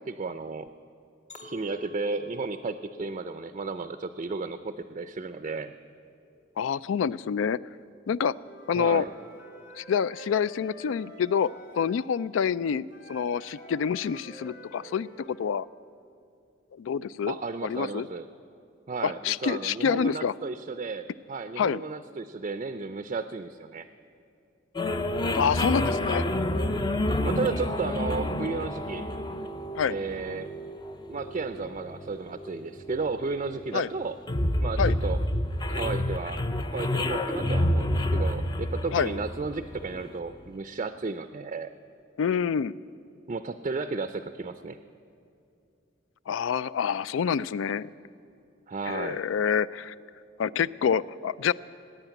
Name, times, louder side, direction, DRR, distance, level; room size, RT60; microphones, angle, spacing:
voice 1, 0.1-0.7 1.4-5.7 8.7-9.1 17.3-18.3 18.9-23.8 27.2-29.1 29.9-30.5 31.1-34.2 34.6-35.2 35.7-36.4 36.7-41.7 43.3-44.8 48.7-49.2, right 4 dB, 35° right, 9 dB, 0.4 m, -33 dB
Chink clink, 1.3-5.6 6.1-6.5, left 4 dB, 40° left, 1.5 m, -49 dB
voice 2, 6.6-7.6 8.1-8.3 8.7-9.0 9.8-11.5 11.8-15.7 16.8-17.3 17.6-18.1 19.0-20.3 21.6-21.8 25.3-26.3 29.8-30.0 33.7-33.9 34.8-34.9 38.9-39.1 42.2-42.7 46.3-47.9 48.9-49.9 50.4-51.5, left 7 dB, 90° left, 19 dB, 0.3 m, -27 dB
Wind instrument woodwind instrument, 8.4-12.1 12.9-15.5, right 1 dB, 65° left, 2.4 m, -48 dB
sound 1, 24.8-40.2, left 1 dB, 25° left, 0.5 m, -29 dB
17.5 x 9.2 x 9.0 m, 2.6 s
head